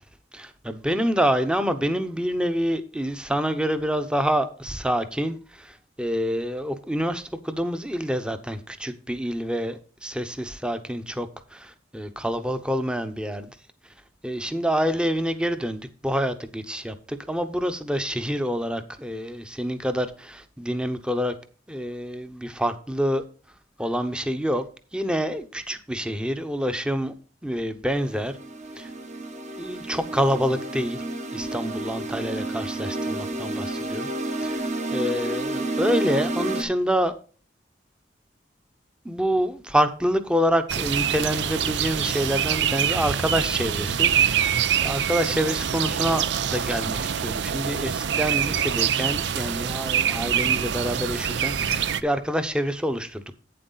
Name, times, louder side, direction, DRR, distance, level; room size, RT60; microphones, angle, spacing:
voice 1, 0.3-13.5 14.2-21.3 21.7-23.2 23.8-24.7 24.9-27.1 27.4-28.4 28.8-28.9 29.6-31.0 31.3-34.1 34.4-37.1 39.0-53.2, equal, 5° right, 0.8 m, -27 dB
sound 1, 27.9-36.6, right 2 dB, 40° right, 1.2 m, -30 dB
sound 2, 40.7-52.0, right 8 dB, 75° right, 0.5 m, -25 dB
9.0 x 7.7 x 4.0 m
head